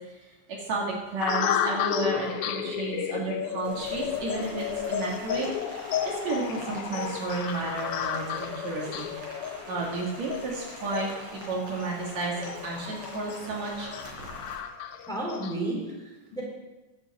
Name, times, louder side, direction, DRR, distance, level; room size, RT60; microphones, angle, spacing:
voice 1, 0.1-9.1 9.7-13.9, right 3 dB, 65° right, -2 dB, 3.2 m, -32 dB
sound 1, 1.2-15.5, left 9 dB, 85° left, 1.2 m, -33 dB
Rain, 3.6-14.6, equal, 40° right, 4.4 m, -44 dB
voice 2, 15.1-16.4, right 2 dB, ahead, -3 dB, 3.3 m, -32 dB
11.0 x 7.5 x 7.7 m, 1.1 s
omnidirectional pair, 3.5 m